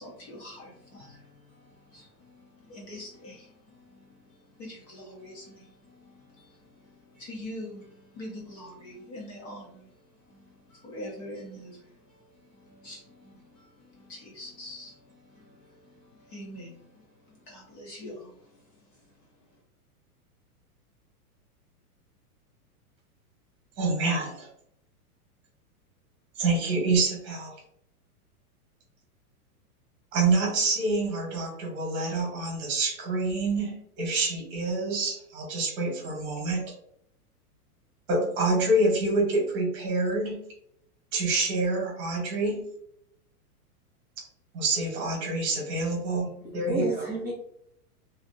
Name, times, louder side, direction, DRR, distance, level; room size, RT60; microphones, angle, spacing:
voice 1, 0.0-19.6, left 1 dB, 25° left, -2 dB, 0.5 m, -45 dB
voice 2, 23.8-24.5 26.4-27.5 30.1-36.7 38.1-40.5 41.1-42.6 44.5-46.9, right 2 dB, 25° right, 0 dB, 1.1 m, -27 dB
voice 3, 46.0-47.3, right 2 dB, 5° right, -7 dB, 1.3 m, -33 dB
3.0 x 2.6 x 2.4 m, 0.71 s
hypercardioid pair, 150°, 46 cm